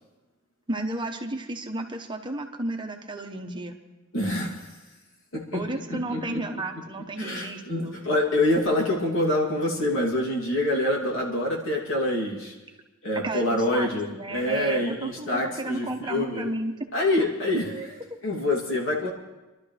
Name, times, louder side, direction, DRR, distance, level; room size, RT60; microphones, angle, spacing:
voice 1, 0.7-3.8 5.5-8.0 13.2-16.9, right 2 dB, 25° right, 4 dB, 1.0 m, -33 dB
voice 2, 4.1-4.7 5.3-5.6 5.9-6.6 7.2-12.5 13.0-16.5 16.9-19.1, left 1 dB, 70° left, -2 dB, 2.9 m, -26 dB
26.0 x 12.0 x 3.4 m, 1.1 s
head